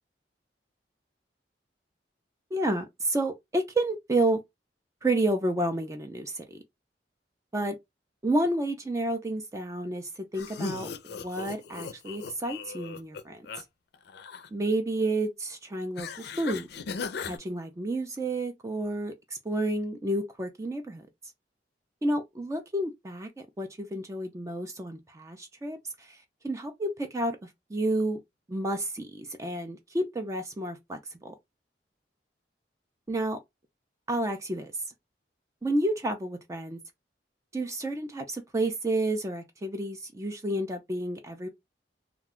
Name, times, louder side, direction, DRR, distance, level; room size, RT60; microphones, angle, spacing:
voice 1, 2.5-4.4 5.0-6.6 7.5-7.8 8.2-13.6 14.5-16.7 17.2-19.1 19.4-21.1 22.0-28.2 28.5-31.3 33.1-33.4 34.1-34.7 35.6-36.8 37.5-41.5, right 1 dB, 20° right, 0.4 m, -30 dB
sound 1, 10.3-13.6 13.9-14.5 16.0-17.4, left 5 dB, 65° left, 0.4 m, -38 dB
2.4 x 2.2 x 3.5 m
head